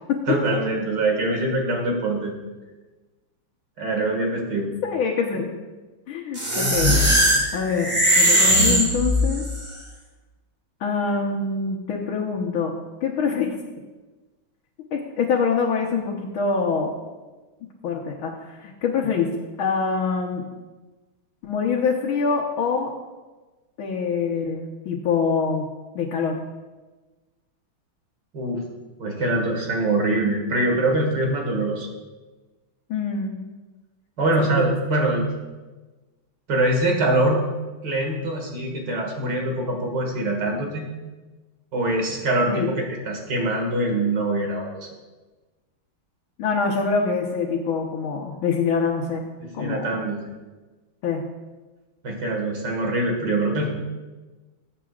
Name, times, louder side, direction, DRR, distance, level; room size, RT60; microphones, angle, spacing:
voice 1, 0.3-2.3 3.8-4.7 28.3-28.6 29.0-31.9 34.2-35.2 36.5-37.4 37.8-40.8 41.7-44.9 49.6-50.3 52.0-53.7, right 2 dB, 60° right, 1 dB, 2.4 m, -23 dB
voice 2, 4.8-5.5 6.1-7.0 7.5-9.5 10.8-12.7 13.0-13.6 14.9-16.9 17.8-19.3 19.6-20.4 21.4-22.9 23.8-25.7 26.0-26.4 32.9-33.3 42.5-42.7 46.4-49.3 49.5-49.9 51.0-51.2, left 5 dB, 75° left, -2 dB, 1.9 m, -24 dB
sound 1, 6.4-9.6, equal, 25° right, 1.4 m, -19 dB
19.0 x 8.2 x 2.5 m, 1.2 s
omnidirectional pair, 2.3 m